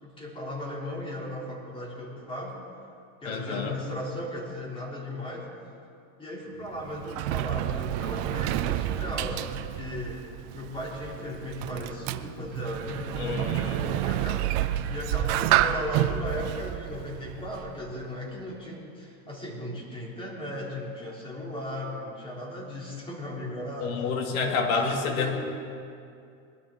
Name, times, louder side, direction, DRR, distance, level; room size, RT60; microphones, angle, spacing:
voice 1, 0.0-2.6 3.2-5.5 6.2-10.2 10.5-24.1 24.5-25.4, left 1 dB, 10° left, -4 dB, 3.4 m, -36 dB
voice 2, 3.2-3.8 13.2-13.9 23.8-25.4, left 5 dB, 85° left, 2 dB, 2.3 m, -29 dB
Sliding door, 6.6-18.0, right 13 dB, 50° right, 0.6 m, -29 dB
22.0 x 12.5 x 3.9 m, 2.5 s
supercardioid pair, 145°, 42 cm